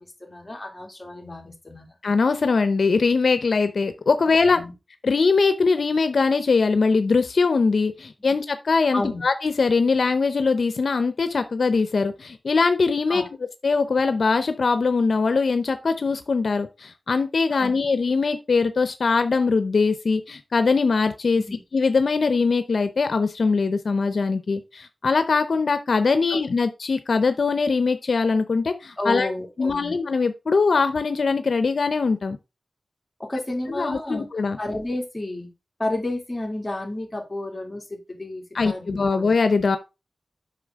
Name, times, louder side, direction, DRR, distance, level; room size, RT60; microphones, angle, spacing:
voice 1, 0.0-1.9 4.5-4.7 8.9-9.2 13.1-13.3 17.5-17.7 21.5-21.6 26.3-26.4 29.0-30.0 33.2-34.3 34.6-35.5 35.8-39.2, left 1 dB, 20° left, 1 dB, 2.7 m, -31 dB
voice 2, 2.0-4.6 5.0-13.2 13.6-21.4 21.7-29.3 29.6-32.4 33.7-34.6 38.5-39.8, left 4 dB, 80° left, 10 dB, 0.6 m, -22 dB
8.4 x 5.9 x 3.6 m, 0.27 s
wide cardioid pair, 85°, 0 cm